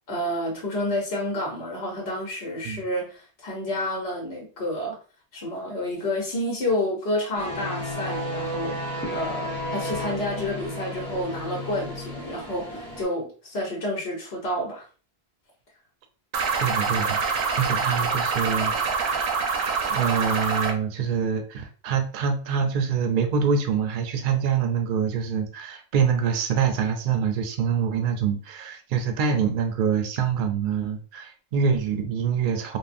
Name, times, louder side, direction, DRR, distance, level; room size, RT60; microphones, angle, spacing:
voice 1, 0.1-5.0 5.3-14.9, left 1 dB, 75° left, -2 dB, 1.1 m, -29 dB
sound 1, 7.4-13.0, equal, 5° left, 0.8 m, -32 dB
sound 2, 16.3-20.7, right 5 dB, 85° right, 0.9 m, -25 dB
voice 2, 16.6-32.8, right 6 dB, 60° right, 5 dB, 0.6 m, -25 dB
3.5 x 2.1 x 2.5 m, 0.38 s
omnidirectional pair, 1.1 m